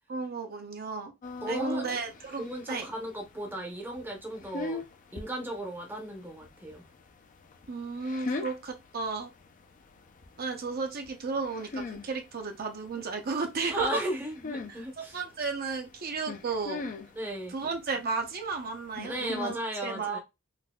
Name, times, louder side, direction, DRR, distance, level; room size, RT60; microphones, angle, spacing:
voice 1, 0.1-1.1 1.5-2.9 7.7-9.3 10.4-14.0 14.7-16.9 17.5-20.2, right 4 dB, 45° right, 0.7 m, -33 dB
sound 1, 1.2-19.6, left 3 dB, 40° left, 0.4 m, -43 dB
voice 2, 1.4-1.9 2.4-4.8 5.1-6.9 13.7-15.2 17.1-17.5 19.0-20.2, right 1 dB, 10° right, 0.7 m, -36 dB
4.0 x 2.6 x 2.2 m
head